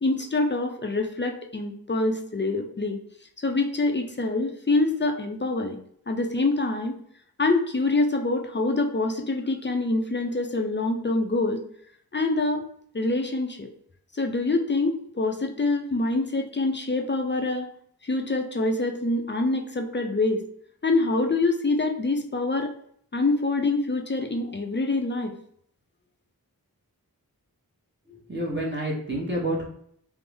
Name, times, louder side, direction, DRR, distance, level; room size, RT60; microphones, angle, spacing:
voice 1, 0.0-3.0 3.4-5.8 6.1-6.9 7.4-11.6 12.1-12.7 12.9-13.7 14.2-17.7 18.0-20.4 20.8-22.7 23.1-25.3, left 2 dB, 30° left, 3 dB, 0.4 m, -25 dB
voice 2, 28.1-29.6, right 1 dB, 30° right, -4 dB, 0.9 m, -29 dB
3.4 x 2.0 x 3.3 m, 0.64 s
wide cardioid pair, 55°, 38 cm